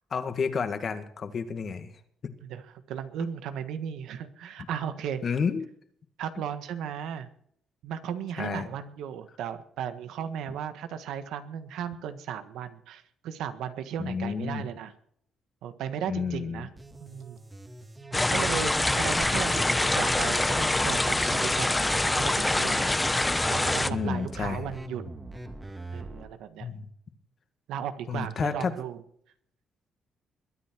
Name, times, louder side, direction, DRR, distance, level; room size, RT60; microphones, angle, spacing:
voice 1, 0.1-1.9 2.2-2.3 5.2-5.6 8.4-8.7 14.0-14.7 16.1-16.7 18.1-18.2 23.9-24.7 26.6-26.9 28.1-28.7, left 6 dB, 50° left, 9 dB, 1.9 m, -30 dB
voice 2, 2.4-5.2 6.2-7.3 7.8-14.9 15.6-16.7 17.0-17.4 18.3-23.2 23.5-25.0 25.9-26.7 27.7-29.0, right 9 dB, 85° right, 10 dB, 1.5 m, -35 dB
sound 1, 16.8-26.3, right 2 dB, 20° right, 2.4 m, -41 dB
sound 2, 18.1-23.9, left 2 dB, 15° left, 0.9 m, -25 dB
21.5 x 9.7 x 4.6 m, 0.64 s
cardioid pair, 90°, 0 cm